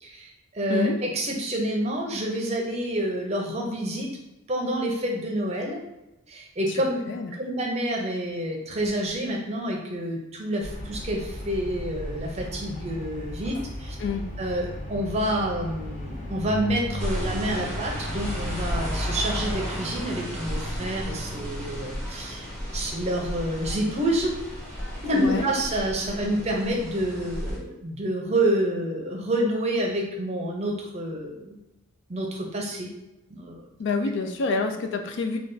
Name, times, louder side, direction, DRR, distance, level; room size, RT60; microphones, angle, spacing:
voice 1, 0.0-4.1 4.5-5.8 6.3-7.0 7.4-14.0 14.4-22.5 22.7-24.3 25.0-31.6 32.1-32.9 33.3-33.6, right 1 dB, 30° right, 0 dB, 0.6 m, -28 dB
sound 1, 10.6-19.1, left 1 dB, 40° left, 0.8 m, -37 dB
sound 2, 16.2-21.9, equal, 90° left, 0.7 m, -39 dB
sound 3, 17.0-27.6, equal, 5° left, 0.8 m, -33 dB
voice 2, 25.2-25.5 33.8-35.4, left 4 dB, 55° left, 5 dB, 0.4 m, -27 dB
3.3 x 2.3 x 3.8 m, 0.93 s
head